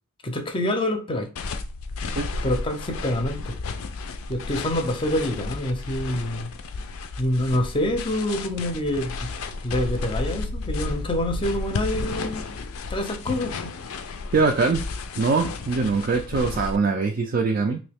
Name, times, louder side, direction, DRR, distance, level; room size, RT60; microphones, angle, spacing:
voice 1, 0.2-1.3 2.4-3.5 4.3-6.5 7.2-9.2 9.6-12.5 12.9-13.7, left 1 dB, 25° left, 0.6 m, -26 dB
sound 1, 1.4-16.8, left 3 dB, 70° left, 0.4 m, -33 dB
voice 2, 14.3-14.9 15.2-17.8, right 4 dB, 45° right, 0.3 m, -22 dB
3.1 x 2.7 x 3.4 m
head